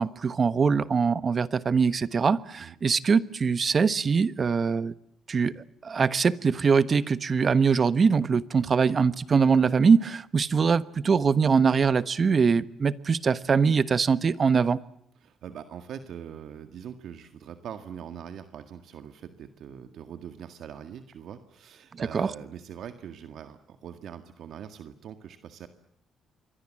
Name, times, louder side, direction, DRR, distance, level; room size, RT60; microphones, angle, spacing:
voice 1, 0.0-4.9 5.3-14.8 22.1-22.3, right 5 dB, 40° right, 15 dB, 1.2 m, -23 dB
voice 2, 15.2-25.7, right 8 dB, 70° right, 8 dB, 1.8 m, -42 dB
27.5 x 23.0 x 7.6 m, 0.74 s
cardioid pair, 90°, 0 cm